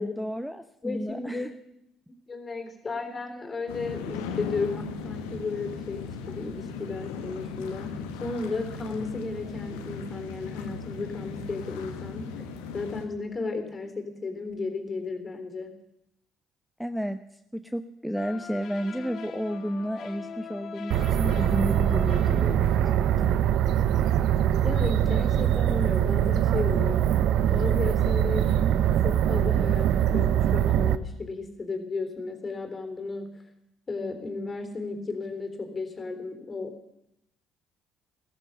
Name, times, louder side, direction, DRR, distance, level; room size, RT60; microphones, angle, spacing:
voice 1, 0.0-1.5 16.8-17.2 17.5-23.4, equal, ahead, 10 dB, 0.9 m, -32 dB
voice 2, 0.8-1.5 2.3-15.7 24.6-27.0 27.5-33.3 33.9-37.0, left 3 dB, 35° left, 7 dB, 3.7 m, -34 dB
sound 1, 3.7-13.1, left 5 dB, 80° left, 1.5 m, -37 dB
sound 2, 18.1-23.0, left 6 dB, 60° left, 1.9 m, -42 dB
sound 3, 20.9-31.0, right 10 dB, 65° right, 0.7 m, -23 dB
15.5 x 14.0 x 6.7 m, 0.81 s
hypercardioid pair, 50°, 0 cm